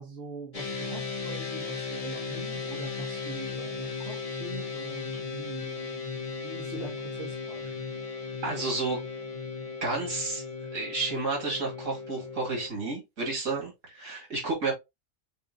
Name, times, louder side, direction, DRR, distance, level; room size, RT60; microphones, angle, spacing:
voice 1, 0.0-7.9, right 3 dB, 60° right, 1.6 m, -44 dB
sound 1, 0.5-12.7, left 4 dB, 30° left, 1.0 m, -36 dB
voice 2, 8.4-9.0 9.8-10.4 10.7-14.7, right 3 dB, 85° right, 2.5 m, -31 dB
6.9 x 2.6 x 2.7 m
omnidirectional pair, 1.3 m